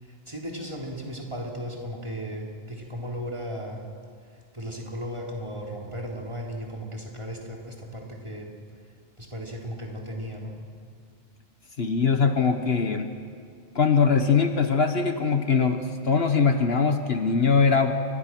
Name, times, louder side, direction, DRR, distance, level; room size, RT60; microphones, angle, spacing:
voice 1, 0.0-3.9 4.2-8.5 9.2-10.6, equal, 25° right, -2 dB, 3.7 m, -36 dB
voice 2, 11.8-13.2 13.7-17.9, left 5 dB, 55° left, 6 dB, 1.4 m, -22 dB
29.5 x 22.5 x 6.1 m, 2.1 s
omnidirectional pair, 1.2 m